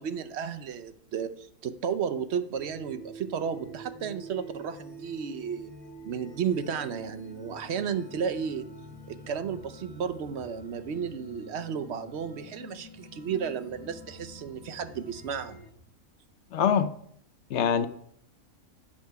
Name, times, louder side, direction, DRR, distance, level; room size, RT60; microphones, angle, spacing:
voice 1, 0.0-5.7 6.0-8.7 9.1-15.6, right 7 dB, 60° right, 10 dB, 0.7 m, -33 dB
sound 1, 2.5-15.7, right 1 dB, 20° left, 0.7 m, -47 dB
voice 2, 16.5-16.9 17.5-17.9, left 7 dB, 60° left, 12 dB, 0.8 m, -23 dB
8.6 x 6.7 x 4.6 m, 0.67 s
omnidirectional pair, 1.5 m